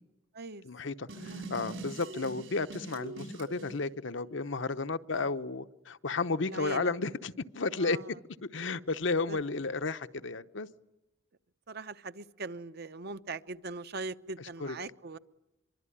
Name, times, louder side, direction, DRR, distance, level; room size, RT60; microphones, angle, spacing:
voice 1, 0.6-8.0 8.4-10.7 14.4-14.8, left 3 dB, 65° left, 0.9 m, -33 dB
sound 1, 1.1-3.7, right 2 dB, 75° right, 6.1 m, -43 dB
voice 2, 1.2-1.7 5.1-5.3 6.5-6.9 7.8-8.0 9.3-9.4 11.7-15.2, right 3 dB, 55° right, 0.9 m, -41 dB
24.5 x 24.0 x 10.0 m
head